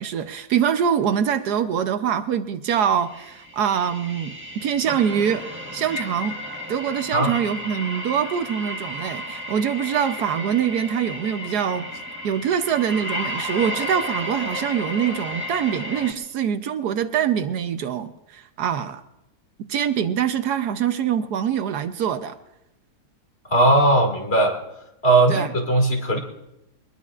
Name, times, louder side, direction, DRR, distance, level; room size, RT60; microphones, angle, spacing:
voice 1, 0.0-6.4 6.7-11.9 12.2-19.0 19.6-22.4 25.3-25.5, right 8 dB, 75° right, 9 dB, 1.3 m, -24 dB
sound 1, 3.0-16.1, left 1 dB, 10° right, 1.3 m, -33 dB
voice 2, 23.5-24.6 25.0-26.2, right 2 dB, 35° left, 2 dB, 2.5 m, -18 dB
23.0 x 20.0 x 2.5 m, 0.90 s
omnidirectional pair, 1.8 m